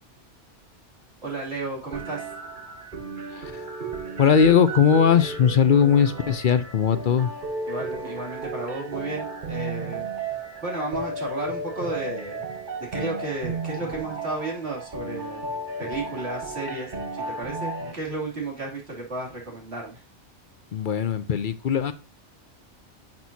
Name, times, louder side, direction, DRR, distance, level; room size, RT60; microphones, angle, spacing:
voice 1, 1.2-2.3 7.7-12.4 12.8-15.5 15.8-20.0, right 2 dB, 65° right, -2 dB, 3.1 m, -33 dB
sound 1, 1.9-17.9, right 3 dB, 45° right, 1.3 m, -34 dB
voice 2, 3.3-3.7 4.2-7.3 20.7-21.9, left 7 dB, 55° left, 12 dB, 0.7 m, -20 dB
10.5 x 5.9 x 2.8 m, 0.32 s
omnidirectional pair, 1.2 m